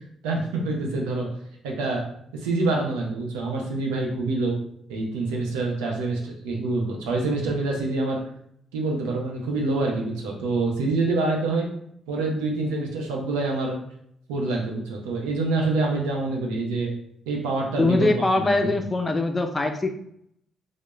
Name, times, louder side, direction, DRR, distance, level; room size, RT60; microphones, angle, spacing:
voice 1, 0.2-1.3 1.6-2.0 2.4-4.6 4.9-8.2 8.7-11.7 12.1-13.7 14.3-16.9 17.3-18.7, right 2 dB, 90° right, 0 dB, 0.6 m, -26 dB
voice 2, 17.8-19.9, left 2 dB, 25° left, 5 dB, 0.4 m, -22 dB
2.2 x 2.0 x 3.0 m, 0.71 s
supercardioid pair, 55°, 0 cm